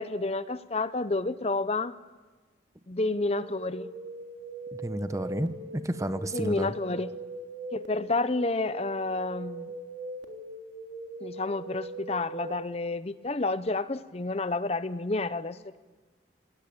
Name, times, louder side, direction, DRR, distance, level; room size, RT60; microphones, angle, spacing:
voice 1, 0.0-1.9 2.9-3.9 6.3-7.1 7.7-9.7 11.2-15.8, left 2 dB, 35° left, 14 dB, 0.7 m, -30 dB
sound 1, 3.1-12.6, right 2 dB, 70° right, 3.3 m, -41 dB
voice 2, 4.7-6.8, right 1 dB, 15° right, 11 dB, 0.9 m, -31 dB
27.0 x 19.0 x 8.8 m, 1.3 s
head